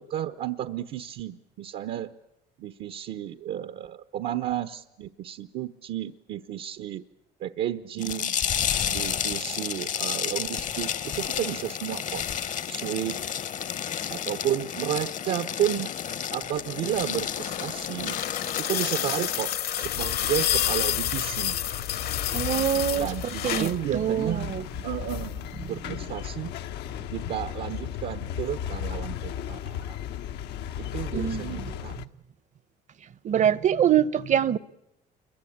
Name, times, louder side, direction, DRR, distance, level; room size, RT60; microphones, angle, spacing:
voice 1, 0.0-2.1 2.6-7.0 7.4-8.4 8.8-12.3 12.7-13.2 14.1-15.9 16.3-18.2 18.6-21.6 22.9-24.5 24.8-26.5 27.1-30.0 30.8-32.0, right 11 dB, 70° right, 1.0 m, -32 dB
sound 1, 8.0-19.5, left 9 dB, 50° left, 0.9 m, -31 dB
sound 2, 17.0-23.8 25.1-25.2, left 11 dB, 65° left, 1.3 m, -29 dB
sound 3, 19.8-32.1, left 9 dB, 80° left, 1.0 m, -35 dB
voice 2, 22.3-24.6 25.9-26.0 31.1-31.7 33.2-34.6, right 9 dB, 45° right, 0.9 m, -25 dB
27.0 x 22.5 x 8.7 m
cardioid pair, 110°, 17 cm